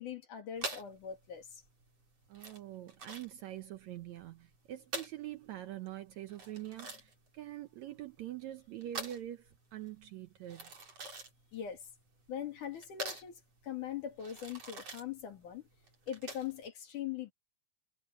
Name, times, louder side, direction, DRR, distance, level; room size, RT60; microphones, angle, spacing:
voice 1, 0.0-1.6 11.5-11.8 12.3-15.6 16.1-17.3, left 9 dB, 65° left, 4.1 m, -41 dB
sound 1, 0.6-16.7, right 2 dB, 45° right, 5.7 m, -46 dB
voice 2, 2.3-10.7, right 13 dB, 70° right, 1.8 m, -45 dB
omnidirectional pair, 3.8 m